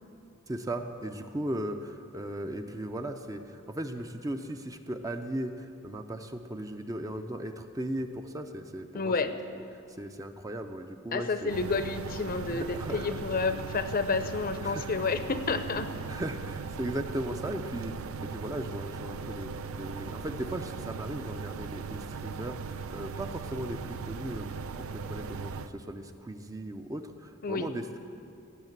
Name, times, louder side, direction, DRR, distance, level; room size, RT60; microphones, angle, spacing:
voice 1, 0.5-9.4 10.0-11.5 12.5-13.2 14.6-14.9 16.1-19.5 19.8-24.5 24.8-28.0, right 1 dB, 15° right, 6 dB, 0.6 m, -37 dB
voice 2, 8.9-9.3 11.1-15.9 27.4-27.7, left 4 dB, 45° left, 10 dB, 0.7 m, -30 dB
sound 1, 11.5-25.7, right 5 dB, 80° right, 0.5 m, -39 dB
18.0 x 6.7 x 8.0 m, 2.5 s
head